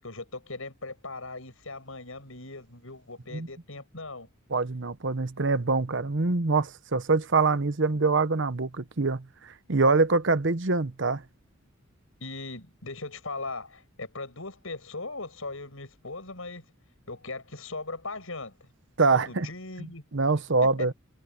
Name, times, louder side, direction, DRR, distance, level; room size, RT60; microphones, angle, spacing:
voice 1, 0.0-4.3 12.2-16.7 17.1-18.7 19.1-20.0 20.8-20.9, left 3 dB, 75° left, 6.7 m, -39 dB
voice 2, 4.5-11.2 19.0-19.5 20.1-20.9, right 3 dB, 60° right, 1.0 m, -25 dB
head